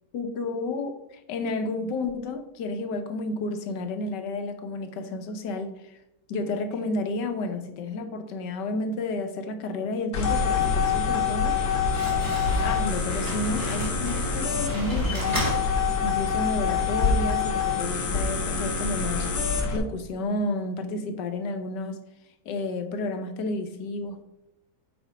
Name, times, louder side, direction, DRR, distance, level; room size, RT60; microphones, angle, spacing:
voice 1, 0.1-6.0 6.3-11.6 12.6-15.5 16.0-19.3 19.7-22.0 22.4-24.3, left 2 dB, 85° left, 8 dB, 1.5 m, -31 dB
sound 1, 10.1-19.8, left 5 dB, 65° left, 1.6 m, -26 dB
Slam, 11.3-16.4, equal, 10° right, 2.1 m, -34 dB
8.5 x 4.5 x 5.0 m, 0.87 s
omnidirectional pair, 1.8 m